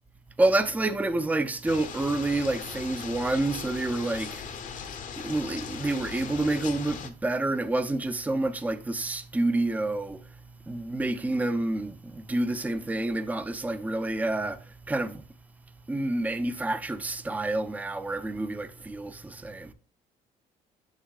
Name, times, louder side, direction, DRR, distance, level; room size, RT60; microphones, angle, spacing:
voice 1, 0.4-4.5 5.2-10.3 10.7-15.2 15.9-19.7, right 2 dB, 10° right, 0.5 m, -28 dB
sound 1, 1.7-7.1, left 7 dB, 50° left, 0.8 m, -39 dB
7.3 x 6.3 x 2.4 m
cardioid pair, 110°, 17 cm